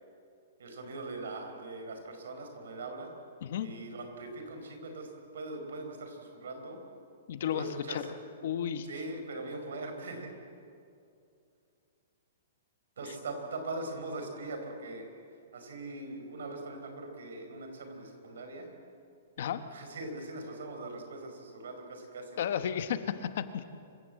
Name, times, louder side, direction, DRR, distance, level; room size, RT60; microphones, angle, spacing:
voice 1, 0.6-3.1 3.6-6.8 7.5-8.1 8.8-10.3 13.0-15.1 15.5-18.7 19.7-22.4, right 2 dB, 75° right, 5 dB, 4.8 m, -41 dB
voice 2, 7.3-8.0 8.4-8.9 19.4-19.6 22.4-23.6, left 9 dB, 45° left, 11 dB, 1.0 m, -33 dB
26.5 x 16.0 x 7.6 m, 2.5 s
hypercardioid pair, 180°, 0 cm